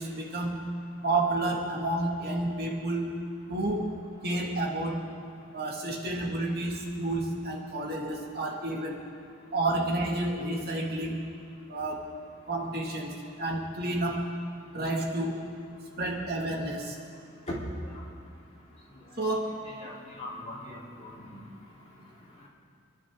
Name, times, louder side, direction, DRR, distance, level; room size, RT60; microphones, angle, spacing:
voice 1, 0.0-4.0 4.2-5.1 5.5-9.0 9.5-11.2 11.7-12.1 12.5-14.3 14.7-15.4 16.0-17.0 19.2-19.6, right 2 dB, 50° right, -1 dB, 2.2 m, -30 dB
voice 2, 19.8-21.4, left 1 dB, 35° left, -6 dB, 3.6 m, -40 dB
28.0 x 11.5 x 3.8 m, 2.3 s
head